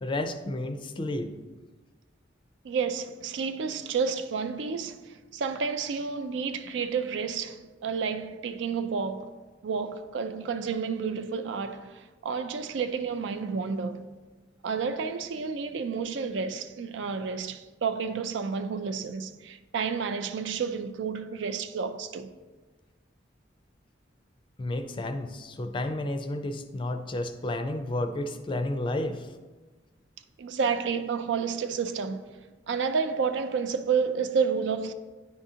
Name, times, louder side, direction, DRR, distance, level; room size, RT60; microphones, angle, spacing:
voice 1, 0.0-1.3 24.6-29.3, left 1 dB, 30° left, 0.4 m, -31 dB
voice 2, 2.6-9.3 9.6-14.1 14.6-22.3 30.4-32.2 32.7-34.9, right 5 dB, 75° right, 0.4 m, -30 dB
9.7 x 3.7 x 2.8 m
head